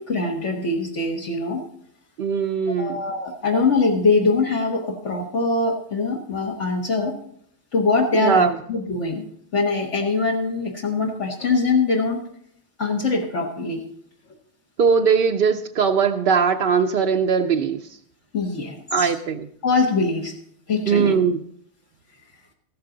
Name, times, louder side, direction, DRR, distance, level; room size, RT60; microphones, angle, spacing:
voice 1, 0.0-1.6 2.8-7.1 7.7-9.2 9.5-12.2 12.8-13.8 18.3-19.1 19.6-20.3 20.7-21.2, left 3 dB, 65° left, -2 dB, 1.7 m, -23 dB
voice 2, 2.2-3.0 8.1-8.6 14.8-17.8 18.9-19.5 20.9-21.4, right 6 dB, 55° right, 3 dB, 0.7 m, -20 dB
14.5 x 13.0 x 3.9 m, 0.66 s
omnidirectional pair, 1.4 m